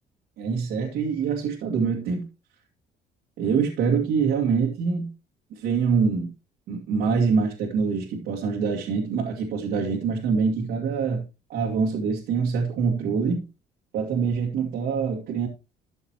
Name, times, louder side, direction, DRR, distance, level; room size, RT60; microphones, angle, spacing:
voice 1, 0.4-2.3 3.4-5.1 5.5-6.3 6.7-11.2 11.5-13.4 13.9-15.5, right 5 dB, 80° right, 2.3 m, -25 dB
13.5 x 6.6 x 3.1 m
cardioid pair, 110°, 17 cm